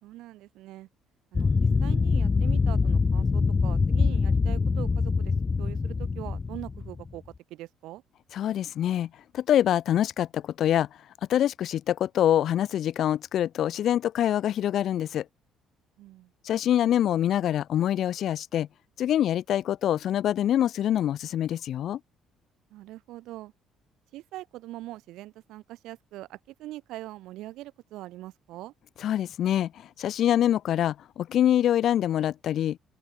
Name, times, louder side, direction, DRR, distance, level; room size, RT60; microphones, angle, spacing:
voice 1, 0.0-0.9 1.3-8.0 16.0-16.3 22.7-23.5 24.1-28.7, right 16 dB, 80° right, 3.9 m, -42 dB
sound 1, 1.3-7.1, left 4 dB, 25° left, 0.9 m, -24 dB
voice 2, 8.3-10.9 11.3-15.2 16.4-18.7 19.0-22.0 29.0-32.8, left 11 dB, 60° left, 1.7 m, -25 dB
open air
cardioid pair, 100°, 0 cm